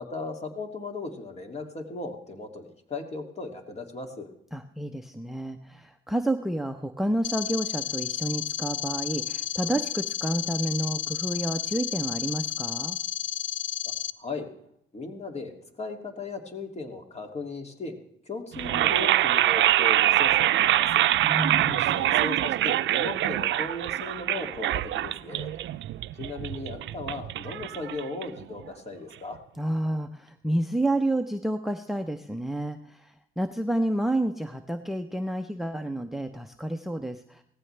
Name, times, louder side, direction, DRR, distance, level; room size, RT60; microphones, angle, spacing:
voice 1, 0.0-4.3 14.2-14.5 14.9-17.9 18.3-21.1 21.7-25.5 26.2-29.4, left 3 dB, 35° left, 4 dB, 2.6 m, -37 dB
voice 2, 4.5-13.0 21.2-22.0 29.6-37.4, right 1 dB, ahead, 8 dB, 0.7 m, -30 dB
sound 1, 7.2-14.1, left 12 dB, 70° left, 0.6 m, -32 dB
sound 2, 18.5-28.6, right 13 dB, 70° right, 0.5 m, -24 dB
18.0 x 15.0 x 3.3 m, 0.71 s
cardioid pair, 90°, 20 cm